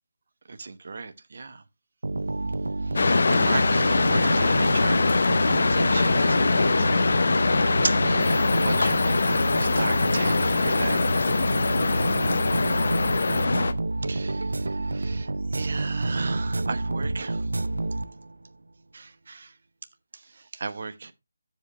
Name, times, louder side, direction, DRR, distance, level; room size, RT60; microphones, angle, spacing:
voice 1, 0.5-1.6 2.8-7.1 7.8-9.2 9.6-10.3 10.6-11.5 14.0-17.5 18.9-19.5 20.1-21.1, right 4 dB, 45° right, 1.0 m, -35 dB
sound 1, 2.0-18.5, right 2 dB, 80° right, 0.6 m, -29 dB
sound 2, 3.0-13.7, left 3 dB, 50° left, 0.7 m, -22 dB
sound 3, 8.2-13.5, left 7 dB, 10° left, 0.6 m, -44 dB
13.5 x 5.1 x 3.2 m
figure-of-eight pair, 175°, 0 cm